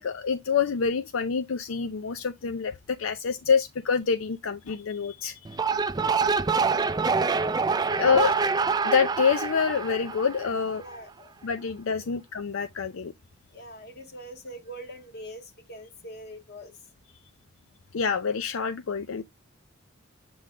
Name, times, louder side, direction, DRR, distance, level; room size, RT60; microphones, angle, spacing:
voice 1, 0.0-5.5 8.0-8.3 8.8-10.8 11.4-13.1 17.9-19.2, left 6 dB, 80° left, 0.5 m, -26 dB
sound 1, 5.4-10.8, right 5 dB, 20° right, 0.4 m, -26 dB
voice 2, 5.9-6.4 7.8-8.2 10.8-11.3 11.9-12.1 13.5-16.7, right 1 dB, 50° left, 1.7 m, -43 dB
7.7 x 3.9 x 3.7 m
head